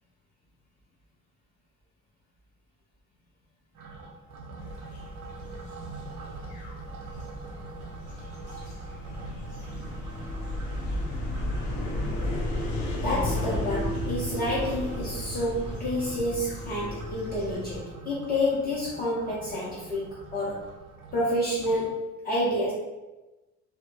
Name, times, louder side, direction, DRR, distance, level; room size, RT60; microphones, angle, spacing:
sound 1, 3.7-21.9, right 3 dB, 70° right, 0.5 m, -45 dB
sound 2, 4.6-17.8, left 1 dB, 70° left, 0.7 m, -34 dB
voice 1, 12.9-20.7 21.1-22.7, left 1 dB, 30° left, -6 dB, 0.4 m, -29 dB
2.0 x 2.0 x 3.0 m, 1.1 s
cardioid pair, 160°, 31 cm